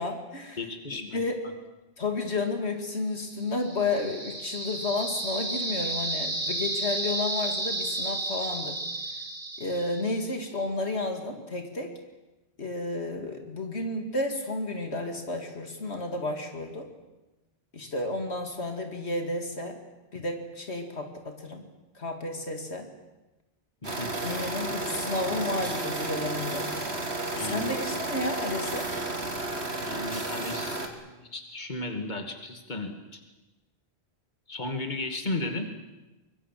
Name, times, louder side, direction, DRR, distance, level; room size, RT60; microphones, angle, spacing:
voice 1, 0.0-0.6 1.1-1.4 2.0-8.8 9.6-11.9 12.6-16.9 17.7-19.8 20.1-21.6 21.9-22.9 24.2-26.7 27.4-28.9, left 2 dB, 80° left, 4 dB, 2.7 m, -32 dB
voice 2, 0.6-1.2 23.8-24.1 27.4-27.8 29.8-33.2 34.5-35.7, left 2 dB, 45° left, 5 dB, 2.6 m, -35 dB
sound 1, 3.4-10.3, right 2 dB, 35° right, 2.3 m, -32 dB
sound 2, 23.8-30.9, right 2 dB, 80° right, 2.9 m, -32 dB
24.5 x 23.5 x 7.6 m, 1.1 s
omnidirectional pair, 1.1 m